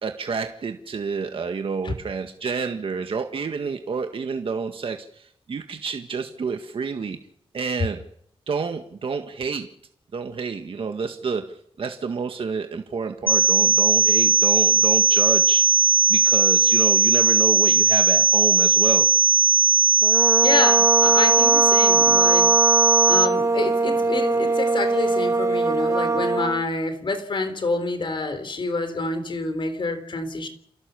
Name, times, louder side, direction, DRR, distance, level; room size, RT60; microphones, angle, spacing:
voice 1, 0.0-7.2 7.5-8.0 8.5-9.7 10.1-19.1, right 5 dB, 65° right, 5 dB, 1.8 m, -29 dB
sound 1, 13.3-23.3, right 4 dB, 20° left, 0.9 m, -18 dB
sound 2, 20.0-26.6, right 3 dB, 30° right, 1.0 m, -22 dB
voice 2, 20.4-22.5 23.1-30.5, left 3 dB, 55° left, 9 dB, 3.8 m, -27 dB
29.0 x 15.5 x 7.0 m, 0.71 s
wide cardioid pair, 145°, 10 cm